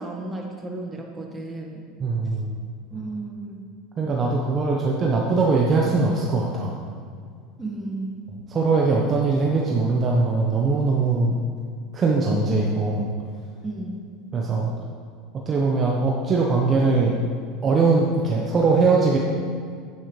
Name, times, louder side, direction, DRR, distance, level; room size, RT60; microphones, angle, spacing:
voice 1, 0.0-1.8 2.9-3.7 7.6-8.3 13.6-14.0, right 2 dB, 15° right, 0 dB, 1.6 m, -33 dB
voice 2, 2.0-2.6 4.0-6.8 8.5-11.4 11.9-13.1 14.3-14.7 15.3-17.2 17.6-19.2, right 3 dB, 30° right, -2 dB, 1.0 m, -21 dB
10.5 x 9.4 x 3.3 m, 2.2 s
supercardioid pair, 110°, 0 cm